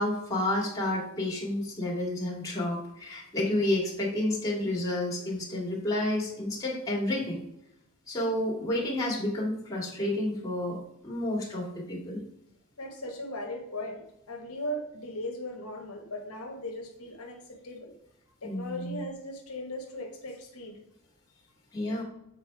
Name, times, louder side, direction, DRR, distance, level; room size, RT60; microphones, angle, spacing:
voice 1, 0.0-7.4 8.1-12.2 18.4-19.0 21.7-22.0, left 1 dB, 15° left, -4 dB, 2.3 m, -30 dB
voice 2, 12.8-17.9 18.4-20.8, left 1 dB, 80° left, 2 dB, 1.3 m, -38 dB
7.6 x 4.2 x 4.6 m, 0.84 s
head